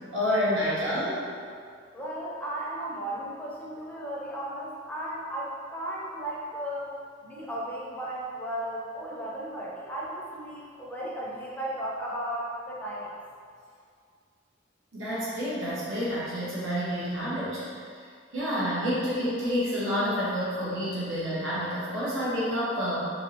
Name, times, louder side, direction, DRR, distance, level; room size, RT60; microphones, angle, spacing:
voice 1, 0.1-1.2 14.9-17.6 18.3-23.1, equal, 90° right, -9 dB, 0.7 m, -28 dB
voice 2, 1.9-6.9 7.2-13.1, right 1 dB, 10° left, -6 dB, 0.4 m, -35 dB
3.0 x 2.6 x 2.7 m, 2.2 s
head